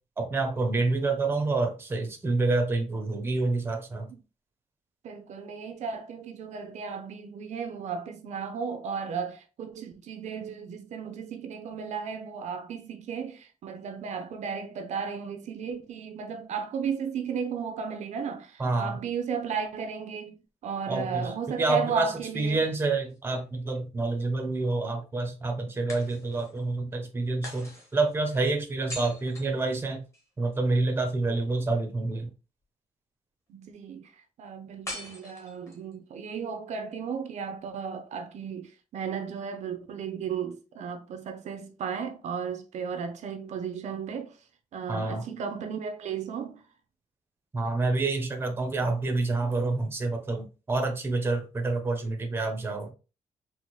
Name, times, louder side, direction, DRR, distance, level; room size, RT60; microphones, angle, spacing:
voice 1, 0.2-4.1 18.6-19.0 20.9-21.3 21.6-30.0 30.4-32.3 44.9-45.3 47.5-52.9, right 3 dB, 15° right, 0.6 m, -28 dB
voice 2, 5.0-22.6 33.5-44.4 44.7-46.6, right 6 dB, 65° right, 0.5 m, -35 dB
sound 1, 22.8-23.8 25.9-26.6 27.4-30.3 34.8-35.9, left 1 dB, 25° left, 1.0 m, -43 dB
4.2 x 2.1 x 3.0 m
wide cardioid pair, 165°, 13 cm